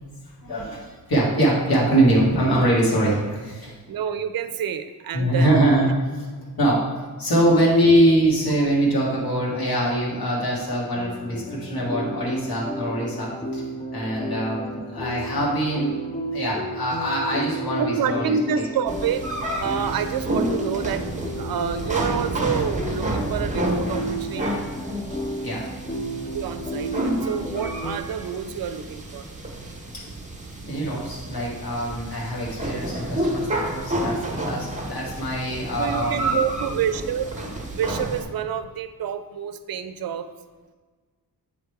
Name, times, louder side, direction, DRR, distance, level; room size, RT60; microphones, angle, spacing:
voice 1, 0.4-3.7 5.1-5.9 6.1-6.3 6.6-6.9 7.2-13.6 13.9-16.0 16.3-18.6 25.4-25.7 30.6-36.3, right 1 dB, 65° left, -5 dB, 1.9 m, -23 dB
voice 2, 3.9-5.5 8.6-8.7 17.8-24.6 26.3-29.3 35.8-37.3 37.7-40.3, right 8 dB, 65° right, 10 dB, 0.5 m, -28 dB
sound 1, 10.9-28.0, right 1 dB, 20° left, 0.4 m, -33 dB
sound 2, 18.9-38.2, right 1 dB, 20° right, 1.1 m, -30 dB
8.3 x 3.3 x 4.6 m, 1.4 s
wide cardioid pair, 125°, 38 cm